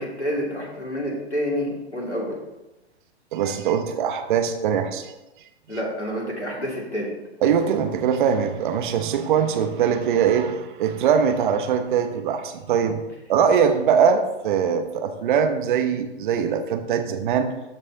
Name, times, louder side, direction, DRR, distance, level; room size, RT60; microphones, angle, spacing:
voice 1, 0.0-2.3 5.7-7.1, equal, 90° left, -3 dB, 2.8 m, -28 dB
voice 2, 3.3-5.1 5.7-5.8 7.4-13.0 13.3-17.5, right 7 dB, 45° right, 7 dB, 1.0 m, -22 dB
13.0 x 5.3 x 3.9 m, 1.0 s
figure-of-eight pair, 115°, 33 cm